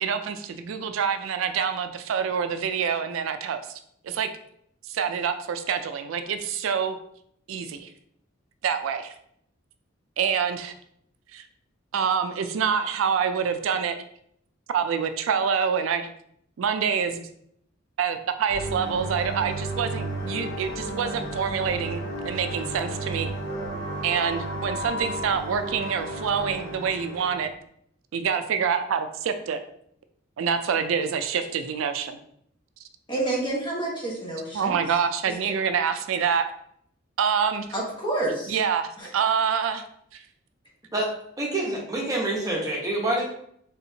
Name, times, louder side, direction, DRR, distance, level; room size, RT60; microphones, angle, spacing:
voice 1, 0.0-4.3 4.9-7.0 7.5-7.9 8.6-9.1 10.2-10.7 11.3-11.5 11.9-14.0 14.7-16.1 16.6-17.3 18.0-23.3 24.0-27.5 28.1-29.6 30.4-32.2 34.5-36.5 37.2-37.7 38.5-39.8 40.1-40.2, right 7 dB, 80° right, 9 dB, 0.4 m, -26 dB
sound 1, 18.5-27.5, right 2 dB, 60° left, 1.1 m, -33 dB
voice 2, 33.1-34.8 37.7-38.6 39.0-39.1, right 2 dB, 25° left, -3 dB, 1.2 m, -29 dB
voice 3, 41.4-43.3, right 1 dB, 20° right, -3 dB, 1.0 m, -26 dB
4.2 x 3.5 x 2.8 m, 0.70 s
head